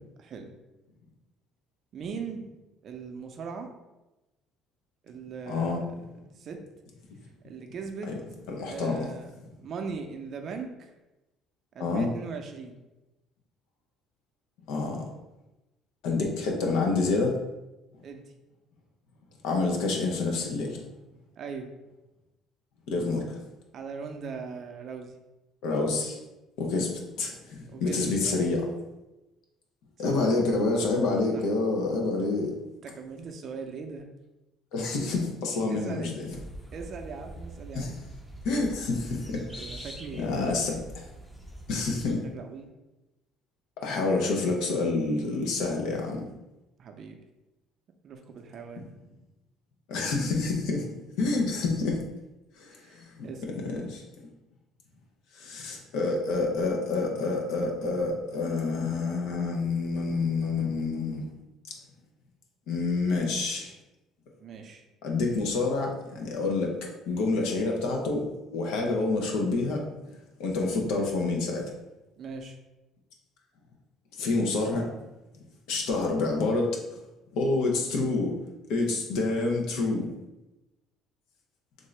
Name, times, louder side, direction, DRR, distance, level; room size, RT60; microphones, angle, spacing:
voice 1, 0.2-0.5 1.9-2.5 2.8-3.7 5.0-5.8 6.3-6.6 7.4-8.2 8.6-10.9 11.7-12.7 18.0-18.3 21.4-21.7 23.7-25.1 27.7-28.4 30.0-30.3 31.3-31.5 32.8-34.1 35.7-36.2 36.7-38.0 39.5-40.4 42.2-42.7 46.8-47.2 48.0-48.9 52.7-53.4 64.4-64.8 72.2-72.6, right 5 dB, 50° right, 4 dB, 0.5 m, -40 dB
voice 2, 5.5-5.8 8.1-8.2 8.5-9.1 11.8-12.1 14.7-15.1 16.0-17.3 19.4-20.8 22.9-23.4 25.6-26.2 26.6-26.9 27.2-28.7 30.0-32.5 34.7-36.3 37.7-37.9 38.4-39.9 40.2-41.1 41.7-42.2 43.8-46.3 49.9-50.9 51.2-52.0 52.6-53.3 53.5-54.0 55.3-61.3 62.7-63.7 65.0-69.8 70.4-71.6 74.2-74.9 75.7-76.8 77.3-78.4 78.7-80.1, left 3 dB, 80° left, 0 dB, 0.7 m, -28 dB
sound 1, 36.3-42.1, right 1 dB, 5° left, 0.6 m, -44 dB
3.6 x 2.6 x 3.2 m, 1.0 s
cardioid pair, 115°, 0 cm